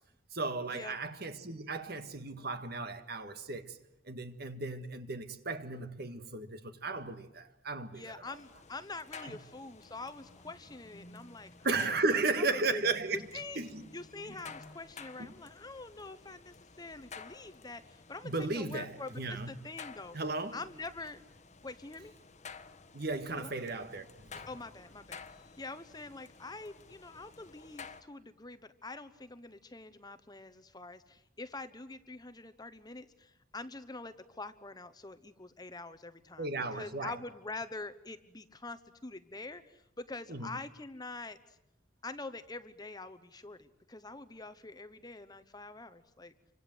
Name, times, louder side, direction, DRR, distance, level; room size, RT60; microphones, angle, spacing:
voice 1, 0.3-3.7 4.1-8.0 11.6-13.2 13.6-13.8 18.2-19.5 20.1-20.6 22.9-24.1 24.3-24.5 36.4-37.1 40.3-40.5, right 3 dB, 55° right, 1.8 m, -35 dB
voice 2, 7.9-12.8 13.1-13.6 13.9-20.2 20.5-21.2 21.6-22.1 23.4-23.5 24.5-41.4 42.0-46.3, left 3 dB, 20° left, 1.1 m, -45 dB
sound 1, 8.2-28.0, left 5 dB, 35° left, 1.3 m, -52 dB
28.5 x 25.0 x 8.0 m
head